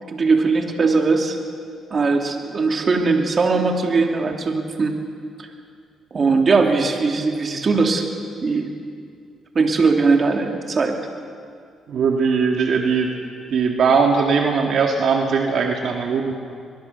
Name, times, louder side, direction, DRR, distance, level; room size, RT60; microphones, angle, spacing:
voice 1, 0.1-1.4 1.9-4.9 5.4-5.5 6.1-8.1 8.4-8.7 9.5-11.0, right 4 dB, 40° right, 3 dB, 2.9 m, -19 dB
voice 2, 11.9-13.1 13.5-16.3, right 5 dB, 65° right, 2 dB, 2.0 m, -19 dB
23.0 x 22.0 x 6.9 m, 2.2 s
cardioid pair, 90°, 0 cm